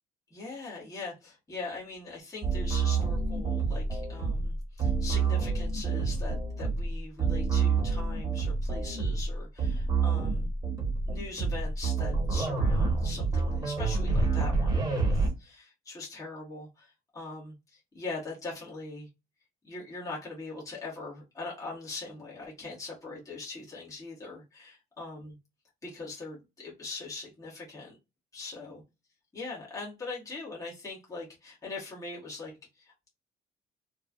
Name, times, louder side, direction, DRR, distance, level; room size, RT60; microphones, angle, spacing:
voice 1, 0.3-10.5 11.1-19.1 19.6-25.3 25.8-28.0 28.3-28.8 29.3-33.1, left 3 dB, 20° left, -5 dB, 1.4 m, -41 dB
sound 1, 2.4-15.3, right 4 dB, 20° right, 1.2 m, -28 dB
3.0 x 2.3 x 2.5 m, 0.25 s
cardioid pair, 110°, 17 cm